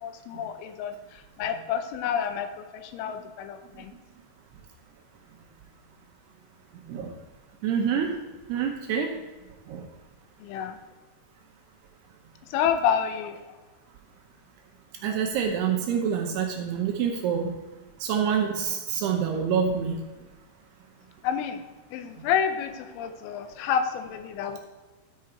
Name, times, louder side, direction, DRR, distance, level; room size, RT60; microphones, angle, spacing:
voice 1, 0.0-3.9 10.4-10.8 12.5-13.6 21.2-21.6 21.9-24.6, left 8 dB, 90° left, 7 dB, 3.2 m, -29 dB
voice 2, 7.6-8.1 8.5-9.1 9.7-9.9 15.0-17.5 18.0-20.0 22.2-22.3, right 7 dB, 80° right, 2 dB, 2.5 m, -26 dB
13.5 x 4.8 x 4.6 m, 1.2 s
omnidirectional pair, 5.5 m